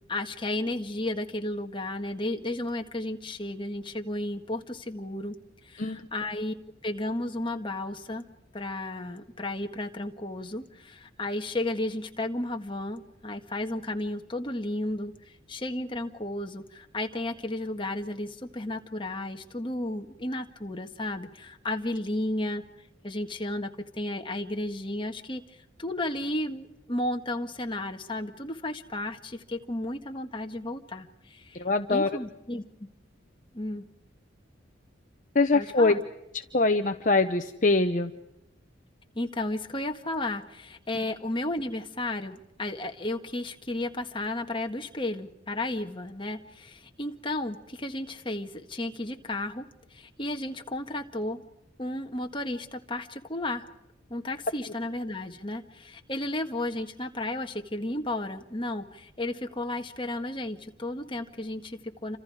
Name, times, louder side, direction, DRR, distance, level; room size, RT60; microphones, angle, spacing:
voice 1, 0.1-5.4 5.6-6.5 6.8-8.2 8.5-15.1 15.5-22.6 23.0-31.6 31.9-32.6 33.5-33.8 35.5-36.0 39.1-51.4 51.8-53.6 54.1-62.2, left 1 dB, 25° left, 4 dB, 1.7 m, -33 dB
voice 2, 31.5-32.1 35.3-35.9 36.3-38.1, left 3 dB, 40° left, 7 dB, 0.9 m, -23 dB
29.0 x 26.5 x 4.9 m, 0.89 s
head